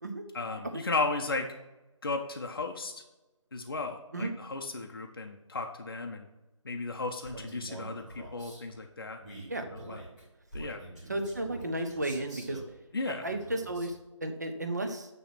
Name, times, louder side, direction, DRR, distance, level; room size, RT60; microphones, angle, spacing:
voice 1, 0.3-1.5 2.0-2.9 3.5-6.3 6.6-9.2 9.7-10.0 10.5-10.8 12.9-13.3, left 3 dB, 45° left, 3 dB, 0.6 m, -35 dB
Male speech man speaking, 7.2-8.6 9.2-12.7 13.2-14.0, right 1 dB, 5° right, 1.7 m, -46 dB
voice 2, 11.1-12.6 13.1-15.1, right 1 dB, 35° right, 6 dB, 0.6 m, -33 dB
9.0 x 3.1 x 6.0 m, 1.1 s
figure-of-eight pair, 170°, 16 cm